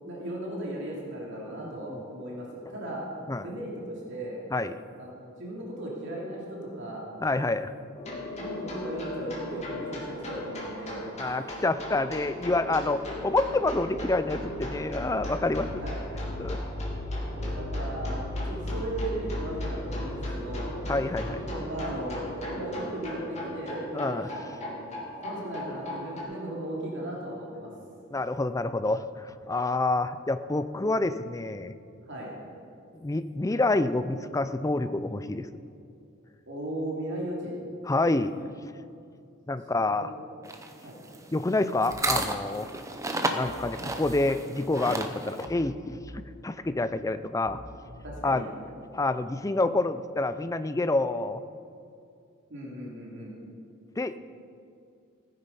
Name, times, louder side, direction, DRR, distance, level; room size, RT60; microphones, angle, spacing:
voice 1, 0.0-3.0 3.4-4.4 5.0-7.1 7.5-7.6 8.4-11.0 15.8-16.0 17.3-20.8 21.3-27.7 32.1-32.3 36.5-37.6 39.9-40.1 40.8-41.0 48.0-48.5 52.5-53.3, right 1 dB, 55° right, -3 dB, 2.6 m, -37 dB
voice 2, 1.6-2.0 3.3-3.5 4.5-4.7 7.2-7.7 11.2-15.8 16.4-16.6 20.9-21.4 23.9-24.3 28.1-31.7 33.0-35.5 37.9-38.4 39.5-40.1 41.3-42.7 43.3-47.6 48.2-48.4 48.9-51.4 54.0-54.2, left 2 dB, 15° left, 12 dB, 0.4 m, -28 dB
sound 1, 7.9-26.2, left 1 dB, 30° left, 2.7 m, -36 dB
sound 2, 40.4-45.5, right 2 dB, 15° right, 0.8 m, -32 dB
sound 3, 41.9-42.3 43.5-44.3 45.5-46.3 47.5-48.3, equal, 85° left, 1.3 m, -45 dB
16.5 x 9.8 x 5.4 m, 2.5 s
head